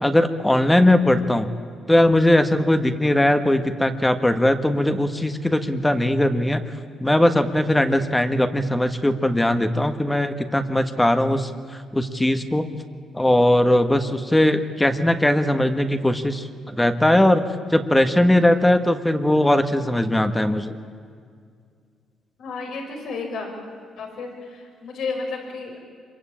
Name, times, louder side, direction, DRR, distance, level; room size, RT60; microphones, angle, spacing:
voice 1, 0.0-1.5 1.9-6.6 7.0-12.7 13.1-17.4 17.7-20.7, left 1 dB, 10° left, 8 dB, 1.6 m, -19 dB
voice 2, 22.4-23.5 24.0-25.8, left 4 dB, 75° left, 2 dB, 5.4 m, -32 dB
26.0 x 23.0 x 8.8 m, 2.2 s
cardioid pair, 90°, 0 cm